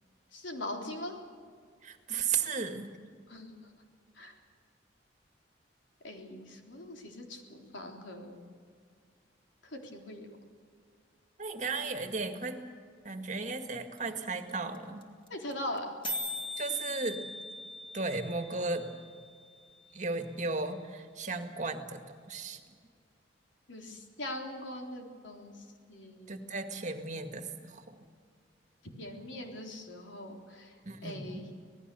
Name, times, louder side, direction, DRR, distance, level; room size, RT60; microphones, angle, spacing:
voice 1, 0.3-1.2 3.3-3.7 4.1-4.3 6.0-8.4 9.6-10.3 15.3-15.9 23.7-26.4 29.0-31.5, left 1 dB, 85° left, 2 dB, 3.6 m, -42 dB
voice 2, 1.8-2.9 11.4-12.6 13.0-15.0 16.6-17.2 17.9-18.9 19.9-22.6 26.3-28.0 30.8-31.5, right 4 dB, 40° right, 6 dB, 1.9 m, -35 dB
sound 1, 14.0-14.1 14.2-14.3 14.5-14.8 15.0-15.1 15.3-15.5 15.8-15.9 16.0-20.0, left 1 dB, 25° left, 2.5 m, -41 dB
26.5 x 18.5 x 6.9 m, 2.1 s
head